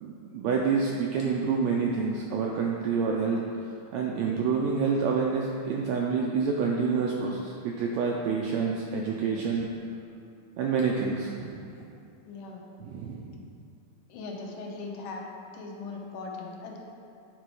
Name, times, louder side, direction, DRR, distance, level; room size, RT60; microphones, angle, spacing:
voice 1, 0.0-3.4 3.9-9.7 10.6-11.6 12.8-13.4, right 5 dB, 90° right, -1 dB, 1.6 m, -28 dB
voice 2, 12.3-12.6 14.1-15.2 15.5-16.8, left 3 dB, 80° left, 0 dB, 2.3 m, -39 dB
9.6 x 3.8 x 4.8 m, 2.5 s
omnidirectional pair, 3.7 m